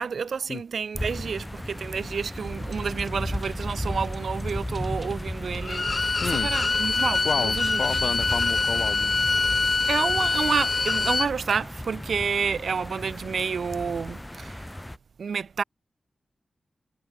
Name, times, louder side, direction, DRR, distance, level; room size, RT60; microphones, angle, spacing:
voice 1, 0.0-6.2 6.4-8.0 9.9-14.6 15.2-15.6, right 6 dB, 80° right, 0.4 m, -29 dB
sound 1, 0.9-15.0, left 1 dB, 10° left, 0.6 m, -35 dB
sound 2, 2.4-8.0, right 2 dB, 30° right, 1.8 m, -44 dB
Bowed string instrument, 5.6-11.3, left 3 dB, 50° left, 1.1 m, -24 dB
voice 2, 6.2-6.5 7.2-9.1, left 5 dB, 75° left, 1.8 m, -31 dB
cardioid pair, 60°, 0 cm